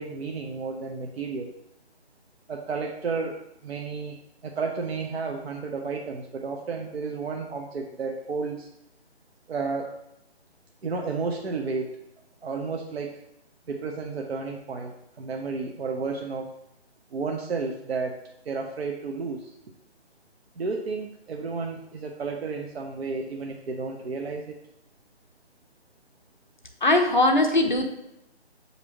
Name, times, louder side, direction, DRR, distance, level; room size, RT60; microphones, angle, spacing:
voice 1, 0.0-1.5 2.5-4.2 4.4-8.7 9.5-9.9 10.8-11.9 12.4-13.2 13.7-16.5 17.1-19.5 20.6-24.6, right 4 dB, 70° right, 1 dB, 0.6 m, -32 dB
voice 2, 26.8-27.9, left 2 dB, 50° left, 3 dB, 0.4 m, -20 dB
6.0 x 2.7 x 2.9 m, 0.85 s
hypercardioid pair, 180°, 32 cm